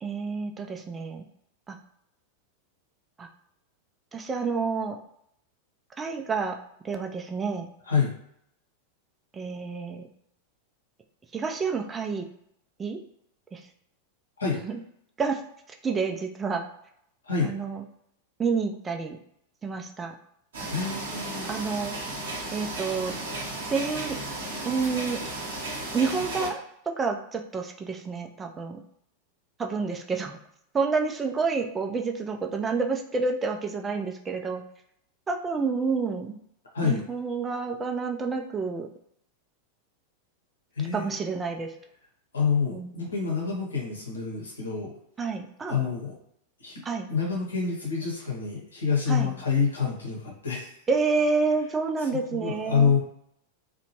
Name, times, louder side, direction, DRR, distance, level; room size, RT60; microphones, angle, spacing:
voice 1, 0.0-1.3 1.7-1.8 3.2-3.3 4.1-5.0 6.0-6.6 6.8-7.7 9.3-10.1 11.3-12.2 12.8-13.0 13.5-13.6 14.6-14.8 15.2-15.4 15.8-16.7 17.4-17.8 18.4-19.2 19.6-20.1 21.5-22.0 22.5-23.1 23.7-24.2 24.6-25.2 25.9-26.6 27.0-28.8 29.6-30.4 30.7-34.6 35.3-36.4 36.8-38.9 40.9-41.7 42.7-42.9 45.2-45.8 46.8-47.1 49.1-49.3 50.9-52.9, right 4 dB, 20° right, 3 dB, 0.4 m, -29 dB
voice 2, 7.8-8.2 14.4-14.6 17.2-17.5 20.7-21.5 36.7-37.0 40.8-41.1 42.3-44.9 45.7-46.2 46.6-46.8 47.1-50.7 52.3-53.0, left 6 dB, 70° left, -2 dB, 0.9 m, -27 dB
sound 1, 20.5-26.5, right 2 dB, 65° right, 0.9 m, -34 dB
2.8 x 2.2 x 2.9 m, 0.71 s
figure-of-eight pair, 90°, 0 cm